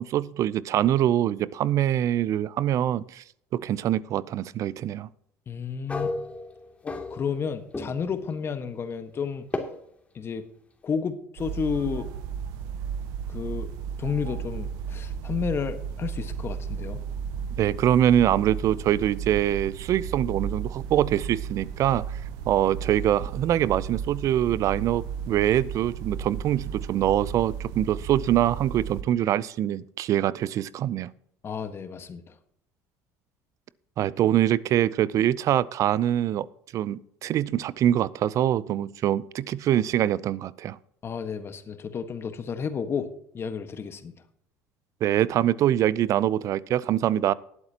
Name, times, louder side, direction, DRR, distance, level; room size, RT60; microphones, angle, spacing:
voice 1, 0.0-3.2 3.5-5.1 17.6-22.2 22.5-31.1 34.0-36.5 36.7-40.8 45.0-47.3, right 11 dB, 55° right, 20 dB, 0.5 m, -24 dB
voice 2, 5.5-6.1 6.8-9.4 10.1-10.4 10.8-12.1 13.3-13.7 14.0-17.0 31.4-32.3 41.0-43.1 43.3-44.1, left 6 dB, 35° left, 9 dB, 1.5 m, -31 dB
sound 1, 5.9-7.5 7.7-8.2 9.5-9.6, left 2 dB, 20° left, 2.6 m, -32 dB
sound 2, 11.4-29.0, right 7 dB, 70° right, 1.1 m, -34 dB
19.5 x 8.1 x 2.9 m, 0.72 s
hypercardioid pair, 80°, 7 cm